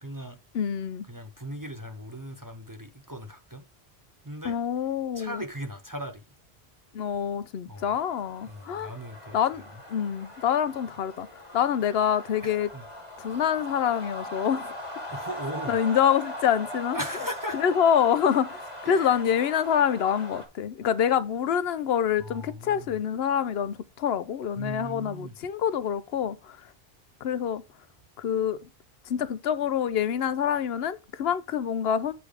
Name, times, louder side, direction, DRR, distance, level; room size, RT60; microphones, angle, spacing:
voice 1, 0.0-0.4 1.1-3.6 4.2-4.6 5.1-6.2 7.7-7.9 8.5-9.4 12.4-12.8 13.3-13.4 15.1-15.8 16.9-17.6 18.8-19.2 22.2-22.9 24.6-25.4, equal, 25° right, 0.6 m, -38 dB
voice 2, 0.5-1.0 4.4-5.4 6.9-8.9 9.3-9.6 9.9-11.3 11.5-12.7 13.2-14.7 15.7-17.0 17.5-26.6 27.2-27.6 28.2-28.6 29.1-32.1, left 8 dB, 75° left, 0.9 m, -26 dB
sound 1, 7.8-20.5, left 1 dB, 30° left, 1.8 m, -40 dB
8.2 x 3.4 x 4.8 m
omnidirectional pair, 1.0 m